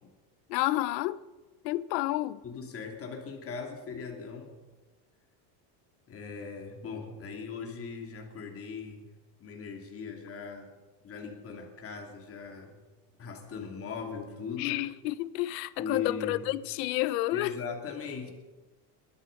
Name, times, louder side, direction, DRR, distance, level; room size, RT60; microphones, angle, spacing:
voice 1, 0.5-1.2 1.6-2.4 14.6-17.5, left 17 dB, 75° left, 0.9 m, -30 dB
voice 2, 2.4-4.5 6.1-9.0 9.4-10.7 11.0-12.8 13.2-14.8 15.8-16.5 17.3-18.3, left 5 dB, 25° left, 3.0 m, -39 dB
21.0 x 13.0 x 5.4 m
supercardioid pair, 145°, 49 cm